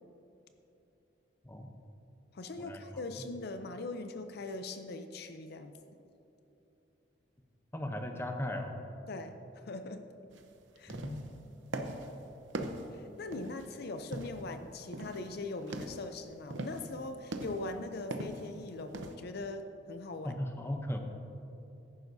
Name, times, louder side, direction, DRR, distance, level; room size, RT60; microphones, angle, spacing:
voice 1, 2.3-5.7 9.1-10.1 10.8-11.0 12.9-20.4, left 2 dB, 60° left, 8 dB, 0.5 m, -41 dB
voice 2, 7.7-8.8 10.9-11.2 20.2-21.0, left 1 dB, 15° left, 4 dB, 0.7 m, -37 dB
sound 1, 10.3-10.5 10.8-11.3 11.7-12.1 12.5-13.7 14.1-14.5 14.9-15.3 15.6-16.1 16.5-16.9 17.3-17.8 18.1-18.5 18.9-19.2, right 2 dB, 85° right, 0.8 m, -40 dB
14.5 x 10.5 x 2.7 m, 2.9 s
head